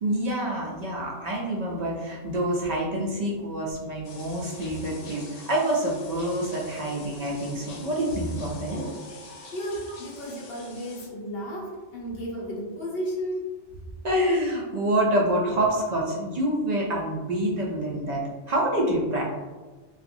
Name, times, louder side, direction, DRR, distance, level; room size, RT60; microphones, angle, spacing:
voice 1, 0.0-8.8 14.0-18.2 18.5-19.2, right 1 dB, 75° right, -3 dB, 0.3 m, -27 dB
sound 1, 4.0-11.1, left 2 dB, 90° left, 0.9 m, -44 dB
voice 2, 9.5-13.5, equal, 60° left, -2 dB, 0.8 m, -33 dB
2.7 x 2.4 x 2.5 m, 1.3 s
omnidirectional pair, 1.2 m